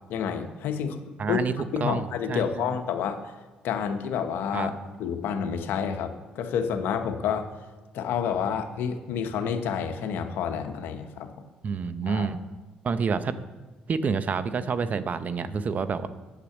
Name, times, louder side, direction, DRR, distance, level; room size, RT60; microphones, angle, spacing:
voice 1, 0.1-1.4 1.7-3.3 3.6-4.7 5.0-7.5 7.9-11.3 12.0-12.3, left 7 dB, 75° left, 7 dB, 1.0 m, -29 dB
voice 2, 1.2-1.5 1.8-2.6 4.5-4.7 11.6-12.4 12.8-13.4 13.9-16.1, right 5 dB, 50° right, 12 dB, 0.7 m, -28 dB
8.4 x 6.8 x 7.2 m, 1.2 s
supercardioid pair, 65°, 4 cm